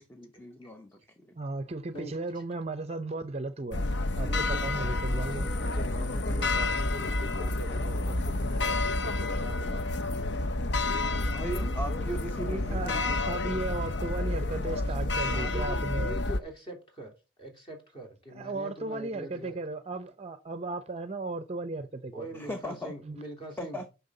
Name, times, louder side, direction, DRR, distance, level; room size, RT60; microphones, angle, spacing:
voice 1, 0.0-1.4 11.2-13.2 22.3-22.9 23.6-23.9, equal, 10° left, 0.7 m, -38 dB
voice 2, 1.4-3.8 4.1-5.5 12.4-16.2 18.4-22.2 23.0-23.2, right 2 dB, 35° right, 0.5 m, -35 dB
sound 1, 3.7-16.4, left 2 dB, 70° left, 0.7 m, -29 dB
voice 3, 4.3-4.9 5.3-10.0 14.7-14.8 15.2-17.1 17.4-19.6 22.1-23.9, right 1 dB, 30° left, 3.2 m, -43 dB
9.5 x 5.9 x 3.8 m
head